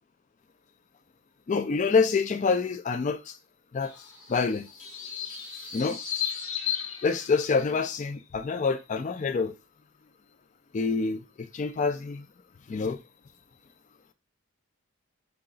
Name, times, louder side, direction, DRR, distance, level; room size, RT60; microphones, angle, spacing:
voice 1, 1.5-3.4 3.7-3.9 4.3-4.7 5.7-6.0 7.0-9.5 10.7-12.2 12.7-13.0, left 4 dB, 35° left, 0.3 m, -26 dB
sound 1, 3.8-7.8, left 9 dB, 80° left, 1.3 m, -35 dB
4.8 x 2.3 x 3.8 m
head